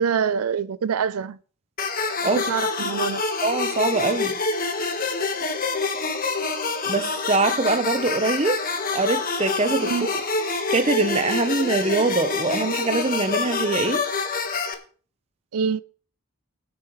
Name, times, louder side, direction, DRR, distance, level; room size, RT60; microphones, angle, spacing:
voice 1, 0.0-1.4 2.4-3.2 9.8-10.1 15.5-15.8, right 6 dB, 90° right, 0.5 m, -25 dB
sound 1, 1.8-14.7, left 4 dB, 40° left, 1.5 m, -26 dB
voice 2, 3.4-4.4 6.9-8.6 8.9-14.0, right 3 dB, 30° right, 0.9 m, -23 dB
19.5 x 8.3 x 3.2 m
head